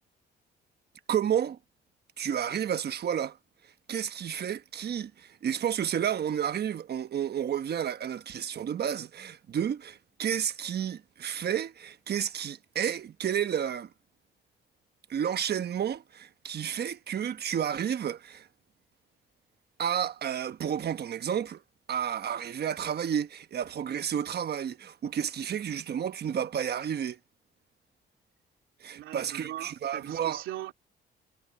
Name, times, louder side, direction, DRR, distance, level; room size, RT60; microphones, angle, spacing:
voice 1, 1.1-1.6 2.2-3.4 3.9-13.9 15.1-18.5 19.8-21.6 21.9-27.2 28.8-30.4, right 9 dB, 55° right, 1.2 m, -31 dB
voice 2, 28.9-30.7, right 13 dB, 85° right, 2.8 m, -39 dB
cardioid pair, 90°, 20 cm